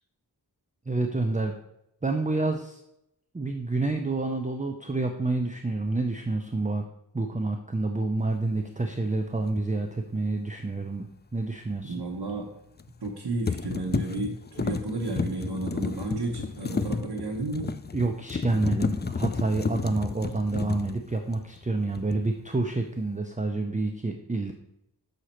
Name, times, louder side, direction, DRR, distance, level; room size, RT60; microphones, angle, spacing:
voice 1, 0.9-1.5 2.0-2.8 3.3-6.8 7.1-11.1 11.3-11.9 17.9-24.5, right 2 dB, 20° right, 4 dB, 0.6 m, -28 dB
sound 1, 9.5-9.7 12.8-13.1 13.5-21.6 21.9-22.4, left 4 dB, 25° left, 0.3 m, -32 dB
voice 2, 11.8-12.5 13.0-17.8, right 2 dB, 65° right, -2 dB, 1.1 m, -32 dB
6.6 x 6.1 x 4.4 m, 0.81 s
wide cardioid pair, 55°, 41 cm